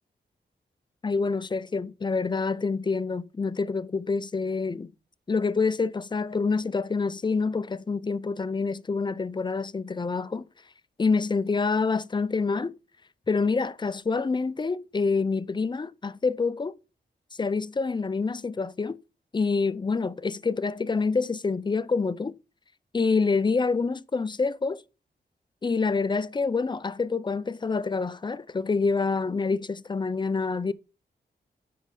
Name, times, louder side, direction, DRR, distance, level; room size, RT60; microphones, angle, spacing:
voice 1, 1.0-4.9 5.3-10.5 11.0-12.7 13.3-16.7 17.4-19.0 19.3-22.3 22.9-24.8 25.6-30.7, left 4 dB, 25° left, 0.5 m, -27 dB
9.3 x 5.3 x 4.8 m
cardioid pair, 80°, 18 cm